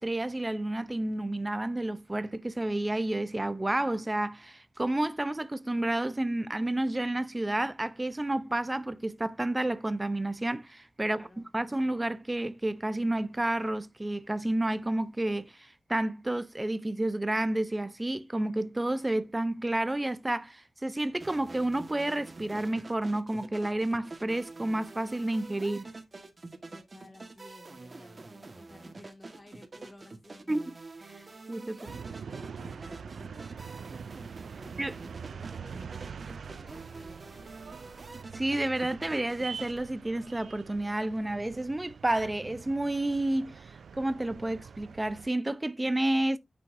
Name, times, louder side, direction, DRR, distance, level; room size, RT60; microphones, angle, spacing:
voice 1, 0.0-11.3 11.5-25.9 30.5-30.6 31.5-31.8 34.8-35.0 38.3-43.6 43.9-46.4, right 1 dB, 15° right, 0.7 m, -30 dB
voice 2, 11.0-11.5 26.7-30.6 31.2-34.1 34.6-38.0, left 1 dB, 25° left, 1.8 m, -54 dB
sound 1, 21.2-39.8, right 3 dB, 35° right, 1.5 m, -47 dB
sound 2, 31.9-45.3, right 6 dB, 80° right, 0.3 m, -44 dB
9.8 x 5.8 x 2.7 m
wide cardioid pair, 110°, 0 cm